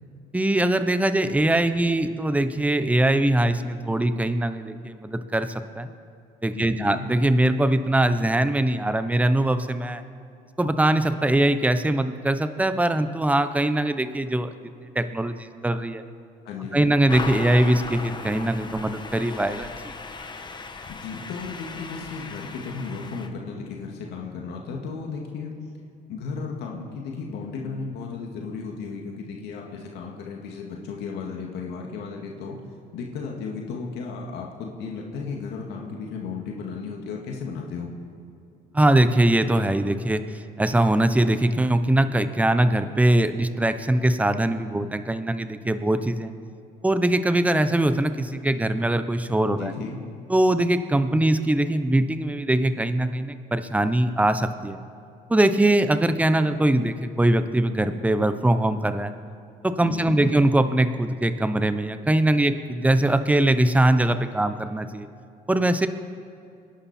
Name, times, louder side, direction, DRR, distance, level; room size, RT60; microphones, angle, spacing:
voice 1, 0.3-5.9 6.4-10.0 10.6-14.5 14.9-16.0 16.7-19.9 38.7-40.2 40.6-46.3 46.8-49.7 50.3-54.8 55.3-59.1 59.6-65.1 65.5-65.9, right 1 dB, 10° right, 10 dB, 0.9 m, -22 dB
voice 2, 6.6-7.1 16.5-16.9 20.9-25.6 26.1-32.6 32.9-37.9 49.6-50.0 59.8-60.4, left 5 dB, 80° left, 0 dB, 2.1 m, -34 dB
sound 1, 17.1-23.3, left 4 dB, 25° left, 1.2 m, -37 dB
27.0 x 11.5 x 4.4 m, 2.5 s
cardioid pair, 110°, 17 cm